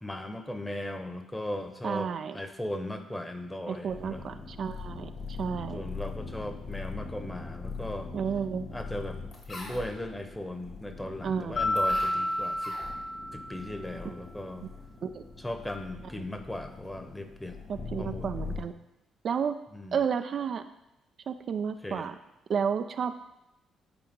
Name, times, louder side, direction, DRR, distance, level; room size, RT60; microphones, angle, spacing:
voice 1, 0.0-4.2 5.7-8.1 8.7-9.2 9.5-12.8 13.3-14.7 15.4-17.6 18.0-18.3 19.7-20.0 21.8-22.1, left 1 dB, 10° left, 7 dB, 1.1 m, -37 dB
voice 2, 1.8-2.4 3.7-5.8 8.1-8.7 11.2-11.7 15.0-15.2 17.7-18.7 19.2-19.6 19.9-20.6 21.3-22.1 22.5-23.1, right 7 dB, 55° right, 8 dB, 0.4 m, -31 dB
sound 1, 3.9-18.6, left 4 dB, 55° left, 2.3 m, -41 dB
Mallet percussion, 11.6-13.9, left 1 dB, 70° left, 1.7 m, -30 dB
10.0 x 4.5 x 3.7 m, 0.92 s
hypercardioid pair, 45°, 0 cm